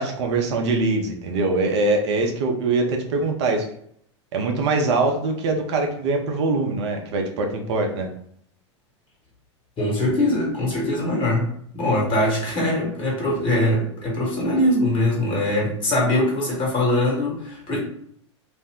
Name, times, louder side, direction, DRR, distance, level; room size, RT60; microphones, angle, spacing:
voice 1, 0.0-3.7 4.3-8.1, right 3 dB, 65° right, 3 dB, 0.6 m, -23 dB
voice 2, 9.8-11.5 11.7-17.8, left 1 dB, 35° left, -3 dB, 1.3 m, -22 dB
2.6 x 2.1 x 3.5 m, 0.67 s
hypercardioid pair, 95°, 16 cm